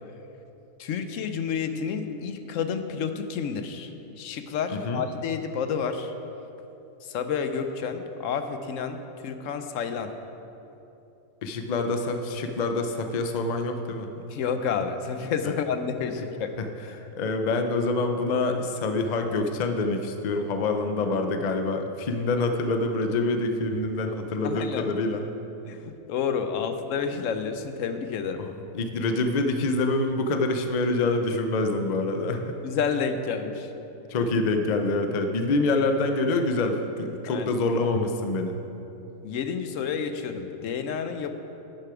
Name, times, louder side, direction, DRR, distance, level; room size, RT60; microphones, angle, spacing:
voice 1, 0.8-3.9 4.2-6.1 7.0-10.1 14.3-16.5 24.4-25.0 25.6-28.4 32.6-33.7 37.3-37.5 39.2-41.3, left 6 dB, 65° left, 8 dB, 0.9 m, -30 dB
voice 2, 11.4-14.1 16.6-16.7 17.2-25.2 28.4-28.5 28.7-32.6 34.1-38.5, left 2 dB, 85° left, 5 dB, 0.3 m, -26 dB
12.0 x 6.6 x 4.9 m, 3.0 s
omnidirectional pair, 1.7 m